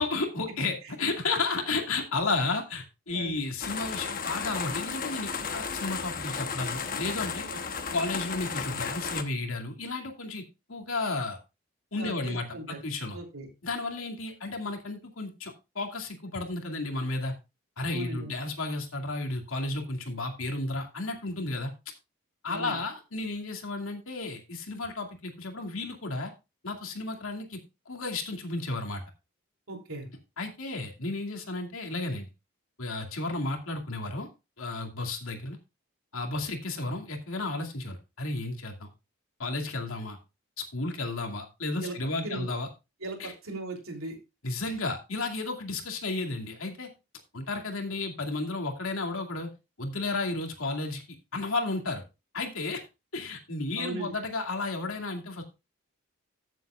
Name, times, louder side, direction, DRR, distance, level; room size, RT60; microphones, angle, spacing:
voice 1, 0.0-7.5 7.9-10.4 10.7-11.4 11.9-13.2 13.6-17.3 17.8-21.7 22.4-26.3 26.6-27.6 27.9-29.0 30.4-32.3 32.8-34.3 34.6-35.6 36.1-38.9 39.4-40.2 40.6-42.7 43.2-43.3 44.4-46.9 47.3-49.5 49.8-51.0 51.3-52.0 52.3-52.8 53.1-55.4, left 3 dB, 80° left, 3 dB, 2.4 m, -33 dB
sound 1, 3.6-9.2, left 5 dB, 40° left, 1.1 m, -34 dB
voice 2, 12.0-12.8 13.1-13.5 17.9-18.3 22.5-22.8 29.7-30.1 41.8-41.9 42.2-42.5 43.0-44.2 44.6-44.8 53.8-54.1, right 2 dB, 85° right, 2 dB, 3.3 m, -38 dB
14.5 x 7.7 x 2.4 m, 0.26 s
head